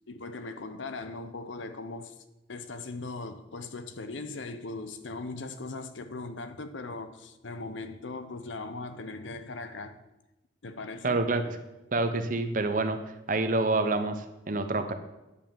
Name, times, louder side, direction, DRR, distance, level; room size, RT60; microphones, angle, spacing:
voice 1, 0.1-2.1 2.5-10.0 10.6-11.2, left 3 dB, 85° left, 0.8 m, -39 dB
voice 2, 11.0-11.6 11.9-13.0 13.3-14.9, right 2 dB, 45° right, 0.8 m, -27 dB
9.9 x 5.5 x 7.0 m
head